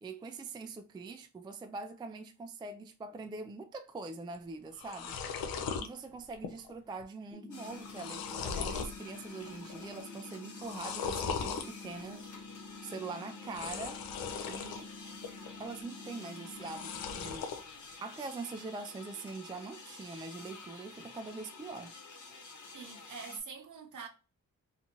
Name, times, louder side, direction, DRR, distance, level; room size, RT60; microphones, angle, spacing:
voice 1, 0.0-5.4 5.8-12.3 12.8-14.0 14.5-14.9 15.6-17.5 18.0-22.0, right 3 dB, 15° right, 0.3 m, -43 dB
sound 1, 4.3-4.4 4.7-5.9 6.3-6.7 7.0-7.1 7.7-9.0 9.4-9.9 10.6-11.7 13.4-14.8 15.2-15.8 16.6-17.6, left 6 dB, 90° left, 0.5 m, -38 dB
sound 2, 7.3-17.3, left 3 dB, 15° left, 1.1 m, -49 dB
sound 3, 7.5-23.4, left 4 dB, 60° left, 1.0 m, -51 dB
voice 2, 22.7-24.1, right 5 dB, 60° right, 0.9 m, -44 dB
2.7 x 2.4 x 2.7 m
supercardioid pair, 50°, 34 cm